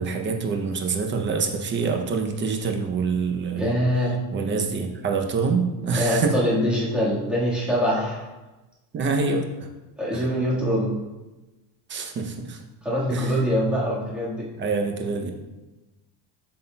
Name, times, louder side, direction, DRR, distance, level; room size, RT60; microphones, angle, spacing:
voice 1, 0.0-3.7 4.3-6.4 8.9-9.7 10.1-10.3 11.9-12.6 13.1-13.4 14.6-15.3, right 4 dB, 25° right, 4 dB, 0.6 m, -26 dB
voice 2, 3.5-4.1 5.9-8.2 10.0-10.9 12.8-14.5, equal, ahead, -7 dB, 1.5 m, -24 dB
8.0 x 5.6 x 2.2 m, 1.1 s
cardioid pair, 150°, 48 cm